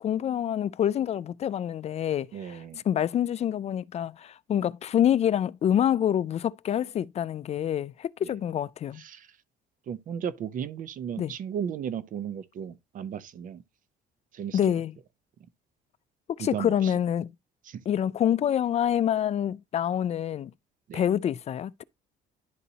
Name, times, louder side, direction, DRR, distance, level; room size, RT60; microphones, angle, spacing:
voice 1, 0.0-9.0 11.2-11.3 14.5-14.9 16.4-17.3 17.9-20.5 20.9-21.8, left 10 dB, 40° left, 0.4 m, -27 dB
voice 2, 2.3-2.8 8.2-8.3 9.0-9.3 9.9-13.6 14.3-14.6 16.4-16.9 17.7-17.8 20.9-21.0, right 8 dB, 50° right, 0.7 m, -35 dB
11.0 x 4.0 x 2.8 m
cardioid pair, 110°, 17 cm